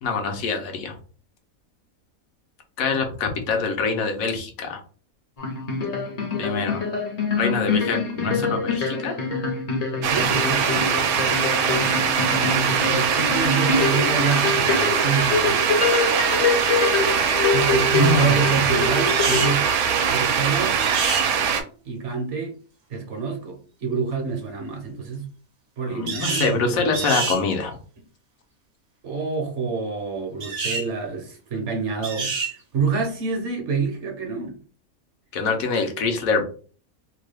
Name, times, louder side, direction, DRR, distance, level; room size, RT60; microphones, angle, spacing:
voice 1, 0.0-1.0 2.8-4.8 6.4-6.8 7.4-9.1 17.9-18.5 25.9-27.8 35.3-36.4, left 4 dB, 75° left, 4 dB, 1.1 m, -25 dB
sound 1, 5.4-19.5, left 4 dB, 40° left, 0.6 m, -25 dB
sound 2, 10.0-21.6, right 7 dB, 90° right, 1.1 m, -22 dB
voice 2, 10.1-11.1 12.5-15.7 17.5-19.7 20.1-20.8 21.8-22.6 22.9-25.3 25.8-27.1 29.0-34.6, right 5 dB, 60° right, 3 dB, 1.0 m, -27 dB
sound 3, 19.1-19.6 20.8-21.3 26.1-26.5 26.9-27.4 30.4-30.9 32.0-32.5, right 4 dB, 45° right, 0.6 m, -27 dB
2.9 x 2.2 x 3.2 m, 0.40 s
omnidirectional pair, 1.5 m